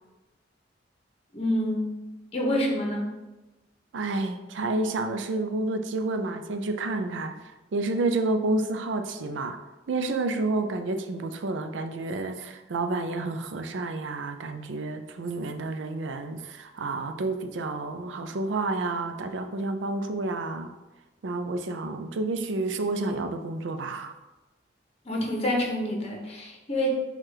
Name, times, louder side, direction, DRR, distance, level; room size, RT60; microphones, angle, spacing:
voice 1, 1.3-1.9 2.3-3.1 25.0-27.0, equal, 35° left, 0 dB, 0.9 m, -27 dB
voice 2, 3.9-7.4 7.7-9.6 9.9-20.8 21.2-24.1, right 2 dB, 90° right, 7 dB, 0.4 m, -30 dB
4.6 x 2.4 x 4.7 m, 1.1 s
head